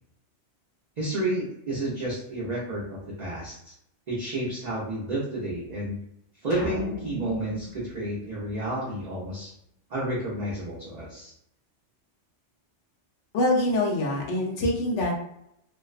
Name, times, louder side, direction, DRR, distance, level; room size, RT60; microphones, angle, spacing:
voice 1, 1.0-3.7 4.1-6.0 6.4-9.5 9.9-11.3, right 1 dB, 50° right, -5 dB, 0.5 m, -31 dB
sound 1, 6.5-9.0, left 1 dB, 55° left, 0.5 m, -37 dB
voice 2, 13.3-15.1, left 1 dB, 75° left, -2 dB, 1.0 m, -24 dB
2.5 x 2.0 x 2.3 m, 0.76 s
omnidirectional pair, 1.2 m